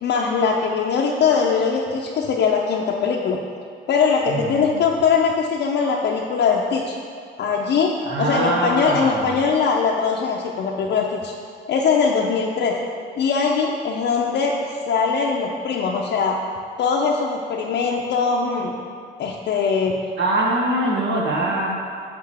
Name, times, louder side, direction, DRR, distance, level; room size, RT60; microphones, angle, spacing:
voice 1, 0.0-3.4 3.9-7.0 7.4-7.9 8.2-11.3 11.7-12.8 13.2-14.5 14.9-16.4 16.8-18.7 19.2-20.0, left 5 dB, 60° left, -2 dB, 0.6 m, -21 dB
voice 2, 4.3-4.8 8.0-9.4 20.2-21.7, right 2 dB, 65° right, -3 dB, 1.2 m, -23 dB
7.9 x 5.5 x 3.5 m, 2.3 s
cardioid pair, 90°, 20 cm